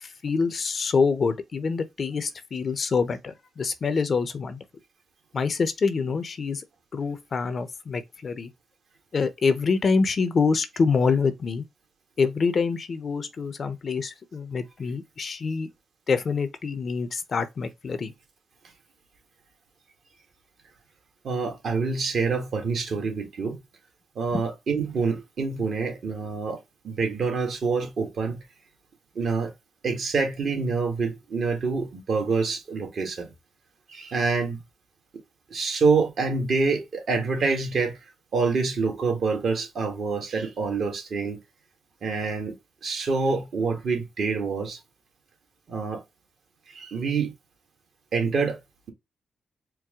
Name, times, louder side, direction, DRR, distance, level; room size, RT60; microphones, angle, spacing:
voice 1, 0.0-4.6 5.3-6.6 6.9-8.5 9.1-11.6 12.2-15.7 16.1-18.1 24.3-24.5, left 5 dB, 55° left, 0.7 m, -26 dB
voice 2, 21.2-23.6 24.1-26.6 26.8-28.4 29.1-29.5 29.8-33.2 33.9-34.6 35.5-37.9 38.3-41.4 42.0-42.5 42.8-44.8 45.7-46.0 46.7-47.3 48.1-48.6, right 4 dB, 65° right, 1.6 m, -26 dB
4.6 x 2.1 x 3.6 m
supercardioid pair, 55°, 0 cm